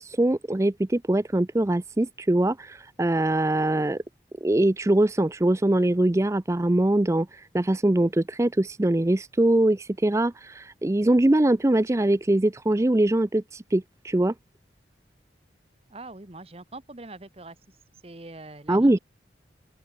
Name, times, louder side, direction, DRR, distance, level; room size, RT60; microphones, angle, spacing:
voice 1, 0.0-4.0 4.4-14.3 18.7-19.0, right 1 dB, 15° right, 0.4 m, -22 dB
voice 2, 15.9-17.6 18.0-19.0, right 2 dB, 35° right, 1.3 m, -43 dB
open air
head